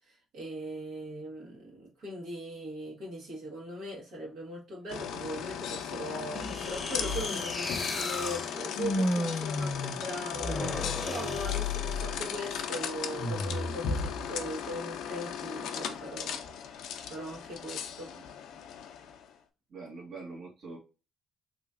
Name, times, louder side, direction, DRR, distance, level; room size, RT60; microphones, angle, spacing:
voice 1, 0.1-16.4 16.7-18.1, equal, 80° right, 1.6 m, -40 dB
sound 1, 4.9-19.3, left 7 dB, 85° left, 0.5 m, -37 dB
sound 2, 6.3-12.3 13.2-13.8, left 2 dB, 25° left, 0.7 m, -33 dB
voice 2, 19.7-20.8, right 3 dB, 60° right, 1.4 m, -44 dB
3.2 x 3.0 x 2.4 m
cardioid pair, 90°, 0 cm